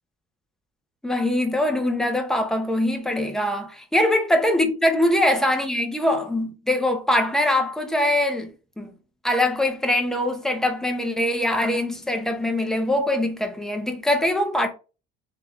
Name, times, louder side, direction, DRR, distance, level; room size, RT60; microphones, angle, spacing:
voice 1, 1.0-8.9 9.2-14.7, left 1 dB, ahead, 0.6 m, -23 dB
3.7 x 3.5 x 3.0 m
cardioid pair, 155°, 21 cm